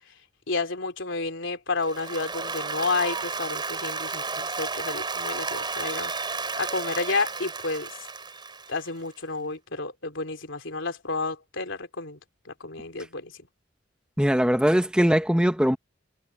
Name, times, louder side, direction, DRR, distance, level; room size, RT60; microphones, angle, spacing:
voice 1, 0.5-6.1 6.6-7.9 8.7-12.2 12.5-13.3, left 3 dB, 70° left, 3.6 m, -30 dB
Applause, 1.8-9.0, right 4 dB, 25° right, 4.8 m, -32 dB
voice 2, 14.2-15.8, equal, 5° right, 1.1 m, -21 dB
head